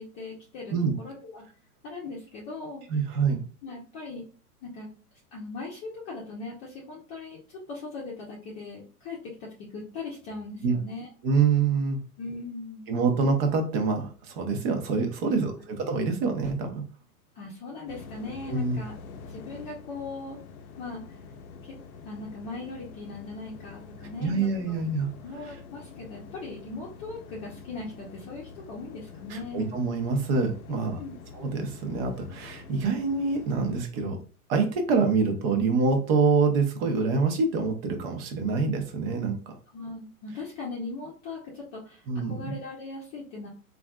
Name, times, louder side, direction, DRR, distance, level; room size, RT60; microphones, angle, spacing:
voice 1, 0.0-1.4 1.8-3.0 3.6-4.2 4.6-4.9 5.3-11.1 12.2-12.8 15.2-15.4 17.3-19.0 19.3-20.4 20.8-21.0 21.6-21.7 22.0-24.3 24.7-24.8 25.2-29.7 30.7-31.2 39.7-43.5, left 3 dB, 30° left, -4 dB, 0.7 m, -39 dB
voice 2, 2.9-3.4 10.6-10.7 11.2-12.0 12.9-15.5 15.8-16.8 18.5-18.8 24.2-25.1 25.4-25.6 29.3-31.0 31.3-34.2 34.5-39.4 42.1-42.5, right 4 dB, 40° right, 4 dB, 0.8 m, -26 dB
sound 1, 17.9-33.8, left 5 dB, 65° left, 0.6 m, -46 dB
3.3 x 2.4 x 2.3 m, 0.39 s
hypercardioid pair, 120°, 46 cm